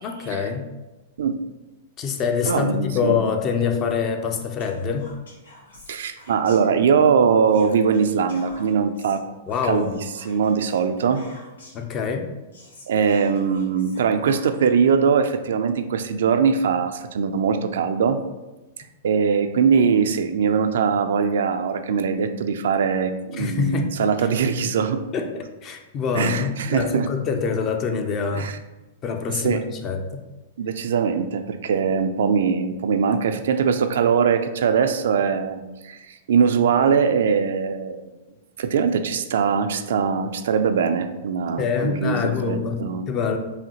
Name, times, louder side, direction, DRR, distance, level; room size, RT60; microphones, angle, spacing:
voice 1, 0.0-0.6 2.0-5.1 9.5-9.9 11.7-12.3 23.3-23.9 25.1-25.3 25.6-28.5 29.0-30.2 41.6-42.8 43.1-43.4, left 6 dB, 35° left, 5 dB, 0.5 m, -25 dB
voice 2, 2.5-3.2 5.9-9.2 9.6-10.0 10.3-11.2 12.9-18.2 19.0-25.0 26.1-27.1 28.3-28.6 29.4-29.6 30.6-38.0 38.6-43.1, right 6 dB, 75° right, 8 dB, 0.3 m, -21 dB
Whispering, 4.6-7.1 7.5-11.9 12.2-12.3 12.5-14.8, left 1 dB, 90° left, 1.1 m, -48 dB
4.9 x 2.7 x 2.9 m, 1.1 s
hypercardioid pair, 120°, 0 cm